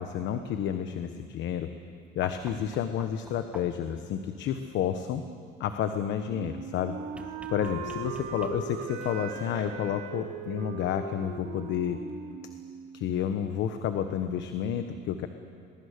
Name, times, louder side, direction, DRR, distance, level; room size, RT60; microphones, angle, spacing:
voice 1, 0.0-1.7 2.1-5.2 5.6-6.9 7.5-12.0 12.9-15.3, left 9 dB, 65° left, 8 dB, 1.1 m, -30 dB
sound 1, 2.2-4.0 7.1-8.9 10.4-10.5, right 2 dB, 5° right, 1.4 m, -49 dB
Wind instrument woodwind instrument, 6.3-13.1, right 5 dB, 75° right, 2.8 m, -39 dB
sound 2, 7.0-7.3 7.6-7.7 8.7-9.7 10.4-10.5 12.1-12.2, left 1 dB, 35° left, 3.7 m, -50 dB
22.5 x 22.0 x 6.7 m, 2.4 s
cardioid pair, 120°, 20 cm